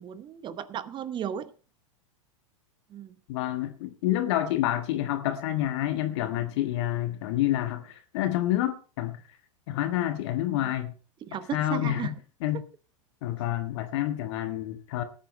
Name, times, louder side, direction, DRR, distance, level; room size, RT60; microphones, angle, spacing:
voice 1, 0.0-1.5 2.9-3.1 10.5-10.7 11.2-12.1, right 9 dB, 30° right, 0.9 m, -35 dB
voice 2, 3.3-9.2 9.7-10.9 11.5-12.1 12.4-12.6 13.2-15.0, left 13 dB, 55° left, 1.5 m, -28 dB
19.0 x 8.8 x 3.2 m
figure-of-eight pair, 95°, 17 cm